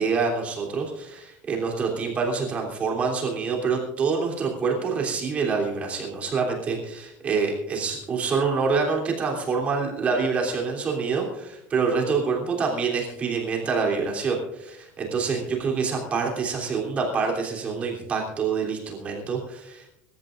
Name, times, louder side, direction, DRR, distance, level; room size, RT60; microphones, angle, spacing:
voice 1, 0.0-19.9, right 5 dB, 25° right, 0 dB, 3.3 m, -26 dB
25.5 x 13.5 x 2.6 m, 0.86 s
cardioid pair, 175°, 6 cm